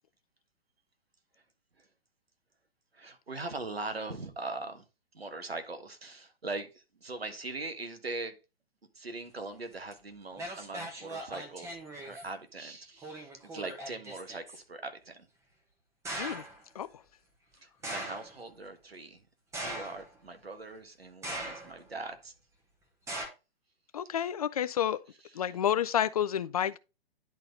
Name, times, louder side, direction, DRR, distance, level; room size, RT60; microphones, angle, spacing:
voice 1, 2.9-4.8 5.1-8.3 8.9-15.3 17.6-19.2 19.5-22.3 24.1-24.3 25.4-25.5, right 3 dB, 75° right, 1.6 m, -41 dB
sound 1, 9.9-10.0 10.4-12.3 13.0-14.6 16.0-16.6 17.8-18.4 19.5-20.3 21.2-21.9 23.1-23.3, right 1 dB, 10° right, 1.4 m, -40 dB
voice 2, 23.9-25.0 25.4-26.8, left 9 dB, 40° left, 0.4 m, -29 dB
10.5 x 4.1 x 3.8 m
figure-of-eight pair, 120°, 30 cm